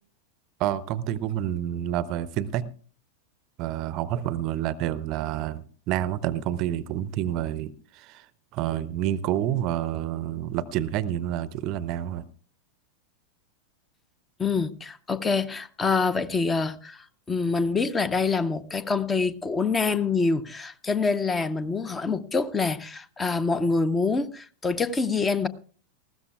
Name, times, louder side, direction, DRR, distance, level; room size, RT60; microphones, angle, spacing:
voice 1, 0.6-2.7 3.6-8.3 8.5-12.3, right 11 dB, 40° right, 0.6 m, -28 dB
voice 2, 14.4-25.5, left 4 dB, 15° left, 0.7 m, -26 dB
19.5 x 15.5 x 2.3 m
figure-of-eight pair, 90°, 0 cm